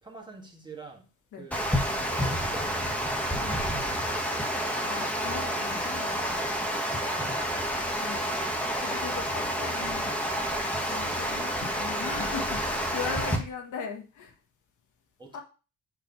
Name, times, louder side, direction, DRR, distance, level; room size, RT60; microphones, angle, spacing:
voice 1, 0.0-1.1 1.3-4.4 15.2-15.4, right 5 dB, 15° right, 1.8 m, -48 dB
Water, 1.5-13.4, equal, 5° left, 1.3 m, -29 dB
voice 2, 4.8-6.7 7.9-10.3 10.9-14.3 15.3-15.4, left 6 dB, 80° left, 1.4 m, -39 dB
6.7 x 3.4 x 5.3 m
cardioid pair, 90°, 30 cm